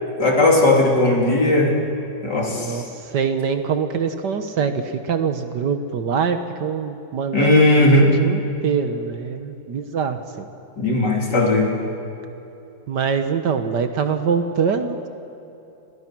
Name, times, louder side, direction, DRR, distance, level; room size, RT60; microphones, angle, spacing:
voice 1, 0.2-1.7 2.2-2.8 7.3-8.1 10.8-11.7, left 2 dB, 60° left, -1 dB, 3.9 m, -17 dB
voice 2, 2.5-10.5 12.9-15.1, right 6 dB, 65° right, 8 dB, 1.6 m, -24 dB
29.0 x 21.0 x 6.1 m, 2.9 s
omnidirectional pair, 2.1 m